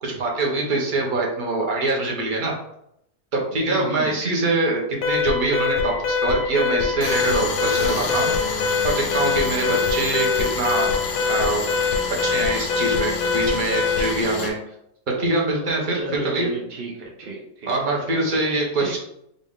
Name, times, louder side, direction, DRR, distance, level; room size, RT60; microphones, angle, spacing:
voice 1, 0.0-2.5 3.3-8.3 8.8-10.9 11.3-11.6 12.2-14.6 15.1-16.5 17.7-19.0, right 2 dB, 40° right, -1 dB, 0.7 m, -24 dB
voice 2, 3.7-4.1 15.9-18.1 18.8-19.0, right 3 dB, 75° right, -2 dB, 0.5 m, -33 dB
Alarm, 5.0-14.2, left 5 dB, 85° left, 1.4 m, -23 dB
Tools, 7.0-14.5, left 4 dB, 65° left, 0.8 m, -29 dB
3.9 x 2.4 x 3.5 m, 0.78 s
omnidirectional pair, 1.7 m